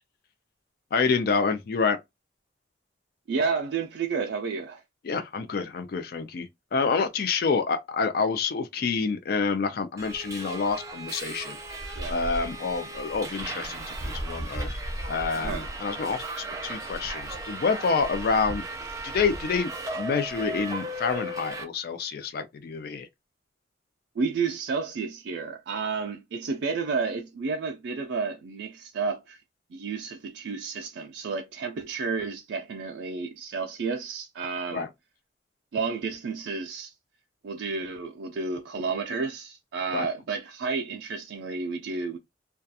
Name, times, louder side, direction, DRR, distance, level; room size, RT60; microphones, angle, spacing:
voice 1, 0.9-2.0 5.0-14.7 15.1-18.6 19.0-23.1 34.7-34.9 39.9-40.1, left 5 dB, 55° left, 0.4 m, -28 dB
voice 2, 3.3-4.8 12.0-12.2 15.3-15.7 24.2-29.4 29.7-34.9 35.7-36.9 37.4-42.2, right 4 dB, 75° right, 0.4 m, -31 dB
Subway metro underground, 10.0-21.6, right 1 dB, 20° right, 0.5 m, -35 dB
2.3 x 2.2 x 2.7 m
head